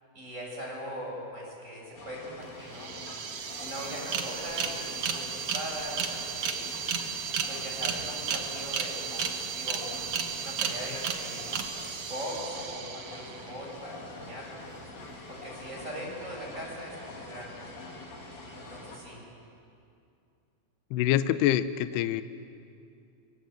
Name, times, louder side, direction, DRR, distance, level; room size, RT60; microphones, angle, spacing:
voice 1, 0.1-2.9 3.6-6.6 7.5-10.1 10.4-11.5 12.1-14.6 15.3-17.7 18.5-19.2, equal, 15° right, -2 dB, 6.6 m, -40 dB
sound 1, 1.9-19.0, left 2 dB, 45° left, 5.2 m, -45 dB
sound 2, 2.4-2.5 2.7-13.5, right 6 dB, 85° right, 1.6 m, -34 dB
voice 2, 20.9-22.2, left 12 dB, 85° left, 12 dB, 2.4 m, -25 dB
28.0 x 23.5 x 7.8 m, 2.5 s
omnidirectional pair, 5.8 m